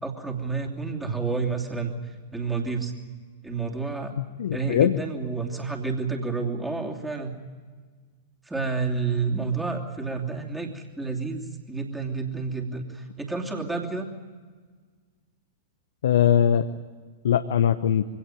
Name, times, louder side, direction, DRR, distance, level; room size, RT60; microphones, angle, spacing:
voice 1, 0.0-2.9 3.4-4.1 4.5-7.3 8.4-14.1, right 4 dB, 5° right, 1 dB, 2.9 m, -30 dB
voice 2, 4.2-5.0 16.0-16.7 17.2-18.1, left 9 dB, 60° left, 10 dB, 0.8 m, -21 dB
24.0 x 17.5 x 9.3 m, 1.5 s
figure-of-eight pair, 95°, 0 cm